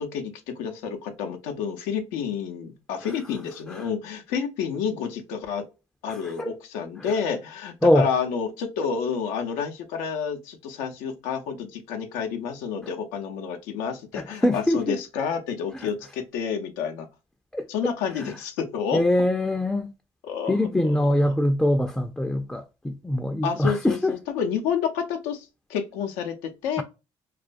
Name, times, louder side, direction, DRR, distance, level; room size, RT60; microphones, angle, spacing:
voice 1, 0.0-5.6 6.0-17.1 17.7-19.0 20.2-21.4 23.4-26.8, left 7 dB, 85° left, 0.5 m, -29 dB
voice 2, 6.1-6.5 7.8-8.1 14.2-15.0 15.8-15.9 17.5-17.7 18.2-18.3 18.9-19.9 20.5-24.1, left 1 dB, 5° left, 0.4 m, -23 dB
2.3 x 2.2 x 2.4 m
supercardioid pair, 60°, 13 cm